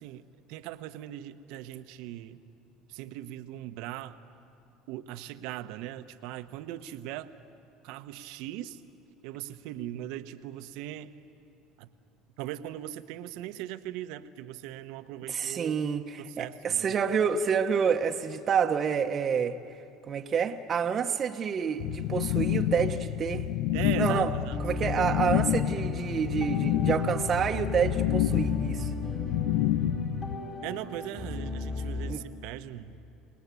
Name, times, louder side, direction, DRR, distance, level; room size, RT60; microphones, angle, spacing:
voice 1, 0.0-2.4 2.9-4.2 4.9-7.3 7.8-8.8 9.2-11.1 11.8-11.9 12.4-15.7 16.2-17.0 23.7-24.6 30.6-33.0, right 13 dB, 70° right, 11 dB, 0.9 m, -39 dB
voice 2, 15.3-19.6 20.1-23.5 24.0-24.3 24.6-28.9 32.0-32.2, right 7 dB, 40° right, 4 dB, 1.0 m, -28 dB
sound 1, 21.8-30.4, left 12 dB, 70° left, 0.8 m, -29 dB
sound 2, 24.5-32.1, left 2 dB, 35° left, 5.4 m, -36 dB
28.5 x 19.0 x 8.4 m, 2.7 s
hypercardioid pair, 80°, 0 cm